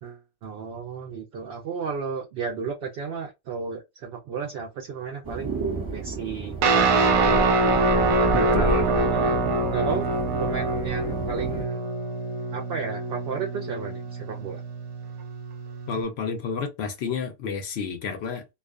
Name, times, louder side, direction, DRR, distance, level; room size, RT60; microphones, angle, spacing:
voice 1, 0.0-5.5 5.9-7.6 8.0-9.5 9.7-10.1 10.4-11.9 12.5-14.6, right 6 dB, 65° right, 0.6 m, -33 dB
sound 1, 5.2-11.6, right 2 dB, 20° right, 0.8 m, -31 dB
Guitar, 6.6-16.0, right 2 dB, 85° right, 1.1 m, -25 dB
voice 2, 8.3-8.8 15.9-18.4, left 5 dB, 65° left, 0.7 m, -30 dB
2.4 x 2.3 x 2.3 m
omnidirectional pair, 1.4 m